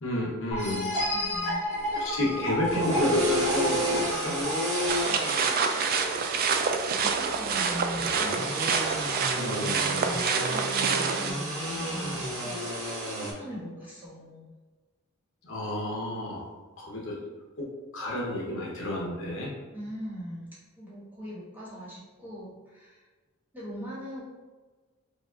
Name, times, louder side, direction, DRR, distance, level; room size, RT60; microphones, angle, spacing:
voice 1, 0.0-0.9 1.9-4.4 9.4-9.9 15.4-17.2 17.6-19.5, left 1 dB, 65° left, -3 dB, 0.9 m, -31 dB
sound 1, 0.5-6.0, equal, 30° left, 1.4 m, -32 dB
voice 2, 1.1-1.7 2.2-2.3 6.9-8.5 9.8-12.8 13.2-14.5 19.7-23.0 23.5-24.2, equal, 10° right, -9 dB, 1.4 m, -40 dB
sound 2, 1.7-13.3, equal, 75° right, 1.3 m, -32 dB
sound 3, 4.9-11.3, right 5 dB, 45° right, 0.3 m, -27 dB
5.1 x 2.4 x 2.4 m, 1.3 s
head